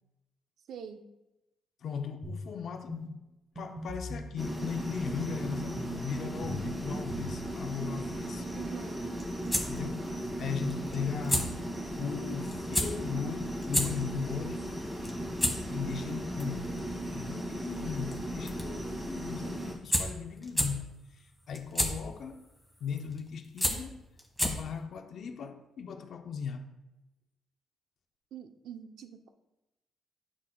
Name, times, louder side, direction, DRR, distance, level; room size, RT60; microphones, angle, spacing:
voice 1, 0.7-1.0 8.5-9.0 28.3-29.3, right 8 dB, 75° right, 0.7 m, -45 dB
voice 2, 1.8-3.2 3.6-8.5 9.7-11.6 12.0-14.7 15.7-16.7 17.1-22.5 22.8-24.0 24.4-26.7, left 6 dB, 60° left, 0.6 m, -38 dB
sound 1, 2.2-2.5 2.9-3.1 3.6-4.3 5.2-6.0 6.4-7.4, equal, 35° right, 1.7 m, -40 dB
sound 2, 4.4-19.7, right 1 dB, 15° right, 2.2 m, -37 dB
sound 3, 9.2-24.8, equal, ahead, 1.6 m, -35 dB
9.6 x 6.3 x 2.3 m
cardioid pair, 90°, 0 cm